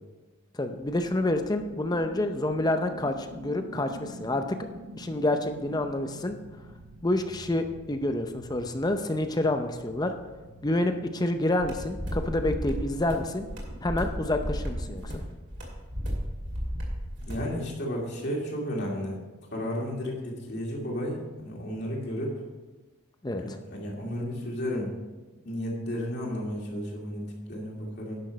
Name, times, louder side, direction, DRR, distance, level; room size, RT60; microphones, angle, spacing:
voice 1, 0.5-4.6 5.0-6.4 7.0-10.1 10.6-13.4 13.8-15.2 23.2-23.6, left 1 dB, 15° left, 7 dB, 0.5 m, -28 dB
sound 1, 0.7-15.1, right 1 dB, 85° right, 1.0 m, -47 dB
sound 2, 11.6-17.5, equal, 50° right, 2.4 m, -34 dB
voice 2, 17.2-19.2 19.5-22.3 23.4-24.9 25.4-28.2, equal, 50° left, -2 dB, 2.4 m, -33 dB
11.0 x 6.2 x 5.2 m, 1.2 s
head